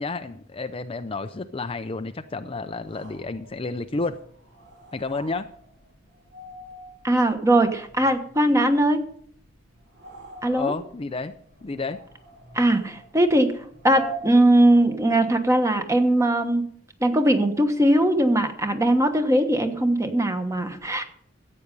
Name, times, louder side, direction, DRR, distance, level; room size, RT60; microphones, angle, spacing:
voice 1, 0.0-4.2 4.9-5.5 10.4-11.3 11.6-12.0, left 3 dB, 30° left, 9 dB, 0.5 m, -31 dB
sound 1, 2.7-15.3, right 4 dB, 65° right, 3.0 m, -45 dB
voice 2, 7.0-9.0 10.4-10.7 12.5-13.5 13.8-16.6 17.0-21.0, right 1 dB, 15° right, 7 dB, 1.3 m, -20 dB
14.0 x 8.7 x 5.4 m, 0.63 s
head